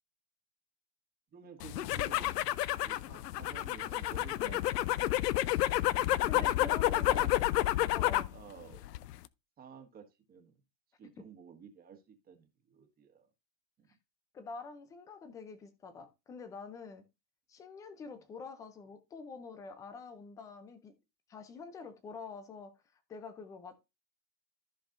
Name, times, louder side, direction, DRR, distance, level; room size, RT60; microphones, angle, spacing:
voice 1, 1.3-2.3 2.8-5.1 5.7-5.8 6.2-6.5 6.9-7.4 8.3-8.8 9.6-10.6 11.0-13.3 13.8-13.9, right 7 dB, 20° right, 1.6 m, -52 dB
sound 1, 1.6-8.4 8.7-9.3, left 15 dB, 70° left, 0.7 m, -30 dB
sound 2, 1.9-7.9, left 6 dB, 90° left, 2.3 m, -58 dB
voice 2, 6.0-7.4 7.9-8.3 11.2-11.3 14.3-17.1 17.5-20.9 21.3-23.8, left 4 dB, 5° left, 0.4 m, -47 dB
14.0 x 5.3 x 2.5 m
supercardioid pair, 145°, 49 cm